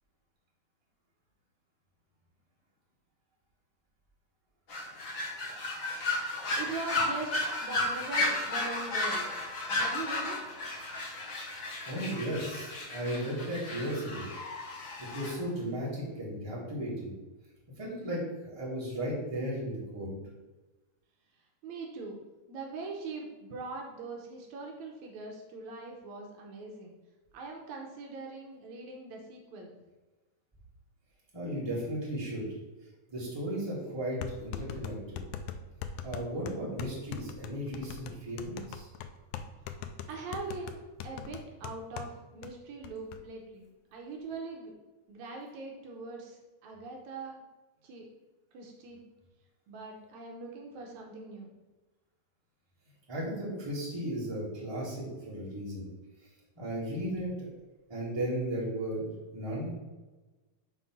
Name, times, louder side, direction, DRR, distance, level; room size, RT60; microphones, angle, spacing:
sound 1, 4.7-15.4, left 2 dB, 55° left, 0.9 m, -34 dB
voice 1, 6.3-9.3 9.7-10.4 21.6-22.2 22.5-27.0 27.3-29.8 40.1-44.7 45.1-47.4 47.8-48.1 48.5-49.0 49.7-51.5, right 3 dB, 75° right, 0 dB, 2.1 m, -42 dB
voice 2, 11.8-14.3 15.1-17.1 17.8-20.1 31.3-32.4 33.1-35.2 36.0-38.9 53.1-55.8 56.5-57.5 57.9-59.8, right 1 dB, 10° right, -6 dB, 1.6 m, -35 dB
sound 2, 33.3-33.4 34.2-42.1 42.4-42.5 42.8-43.2, left 8 dB, 85° left, 2.0 m, -40 dB
5.8 x 3.9 x 5.9 m, 1.2 s
omnidirectional pair, 3.5 m